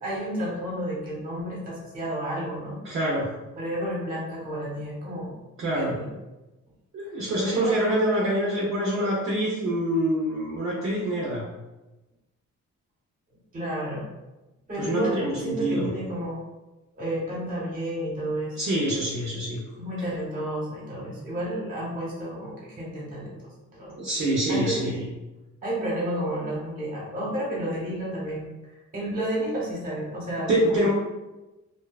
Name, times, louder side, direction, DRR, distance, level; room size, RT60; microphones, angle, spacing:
voice 1, 0.0-2.8 3.6-5.3 5.7-6.1 7.0-7.2 7.4-7.7 13.5-14.0 14.7-16.4 17.0-18.6 19.8-24.0 24.5-24.8 25.6-30.8, right 1 dB, 30° right, -5 dB, 0.9 m, -31 dB
voice 2, 2.8-3.3 5.6-5.9 6.9-11.4 14.8-15.9 18.6-19.6 24.0-25.1 30.5-30.9, right 1 dB, 45° right, -5 dB, 0.5 m, -25 dB
2.6 x 2.2 x 2.3 m, 1.1 s
cardioid pair, 165°, 29 cm